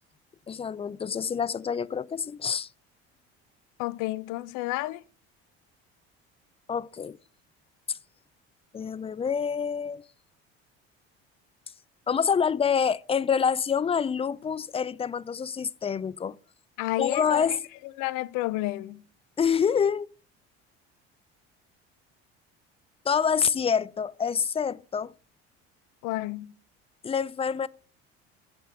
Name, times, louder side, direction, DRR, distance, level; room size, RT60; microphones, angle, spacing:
voice 1, 0.5-2.7 6.7-7.2 7.9-8.0 8.7-10.0 12.1-16.4 17.0-17.6 19.4-20.1 23.1-25.1 27.0-27.7, left 7 dB, 20° left, 0.4 m, -27 dB
voice 2, 3.8-5.0 16.8-17.6 18.0-19.1 26.0-26.6, left 18 dB, 70° left, 0.6 m, -30 dB
8.0 x 6.9 x 6.4 m
supercardioid pair, 80°, 32 cm